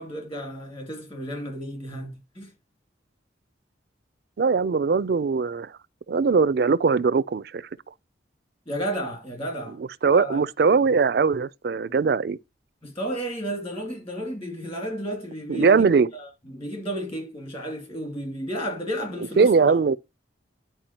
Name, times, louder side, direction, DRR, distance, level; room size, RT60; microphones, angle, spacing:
voice 1, 0.0-2.5 8.7-9.8 10.1-10.4 12.8-15.8 16.1-19.8, equal, 30° left, 2.3 m, -32 dB
voice 2, 4.4-5.7 6.1-7.6 10.0-12.4 15.5-16.1 19.4-20.0, right 5 dB, 55° right, 0.3 m, -20 dB
10.5 x 4.7 x 2.8 m
head